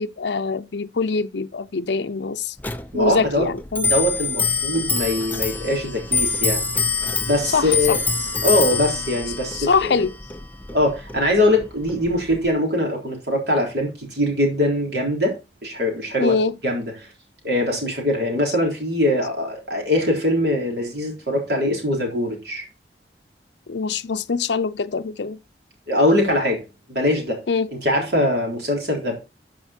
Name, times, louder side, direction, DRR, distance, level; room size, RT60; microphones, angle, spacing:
voice 1, 0.0-2.5 2.9-3.9 7.5-8.0 9.5-10.1 16.2-16.5 23.7-25.4 27.5-27.7, left 4 dB, 80° left, 0.6 m, -23 dB
Clock, 2.6-12.5, left 4 dB, 10° left, 0.5 m, -26 dB
voice 2, 2.9-3.5 3.8-6.8 7.3-8.0 8.4-10.0 10.7-15.4 15.6-16.4 16.6-17.1 17.4-22.6 25.9-26.6 26.9-27.4 27.7-29.2, left 1 dB, 70° right, 3.8 m, -22 dB
13.5 x 5.2 x 4.4 m
head